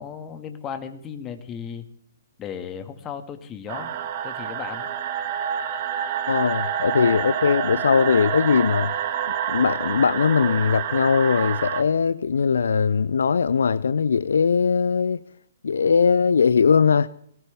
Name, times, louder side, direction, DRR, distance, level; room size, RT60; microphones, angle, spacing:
voice 1, 0.0-1.9 2.4-3.9 4.2-4.9, left 7 dB, 20° left, 1.9 m, -35 dB
sound 1, 3.7-11.8, right 9 dB, 40° right, 1.8 m, -28 dB
voice 2, 6.3-8.9 9.5-15.2 15.6-17.1, left 6 dB, 65° left, 0.5 m, -20 dB
20.0 x 18.0 x 3.5 m
figure-of-eight pair, 125°, 0 cm